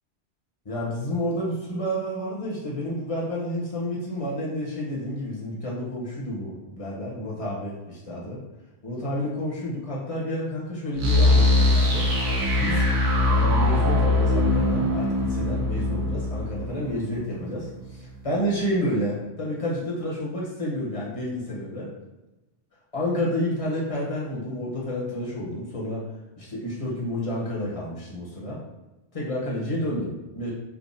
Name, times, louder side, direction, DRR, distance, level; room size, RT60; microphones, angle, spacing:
voice 1, 0.6-8.4 8.8-12.1 12.5-12.9 13.3-21.9 22.9-26.1 26.4-28.6 29.1-30.5, equal, 35° left, -5 dB, 0.7 m, -30 dB
sound 1, 11.0-17.8, left 2 dB, 80° right, 1.0 m, -22 dB
3.5 x 2.2 x 2.5 m, 1.0 s
omnidirectional pair, 1.2 m